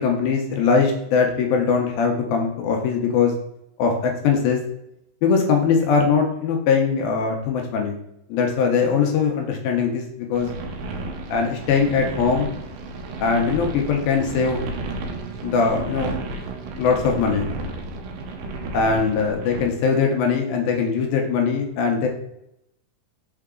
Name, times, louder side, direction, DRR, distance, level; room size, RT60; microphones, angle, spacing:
voice 1, 0.0-3.3 3.8-4.6 5.2-8.0 8.3-10.5 11.3-12.5 13.2-14.6 15.4-16.2 16.8-17.5 18.7-22.1, left 5 dB, 75° left, 2 dB, 2.3 m, -21 dB
sound 1, 10.3-19.7, right 2 dB, 80° right, 1.9 m, -32 dB
5.7 x 4.7 x 3.7 m, 0.81 s
omnidirectional pair, 4.6 m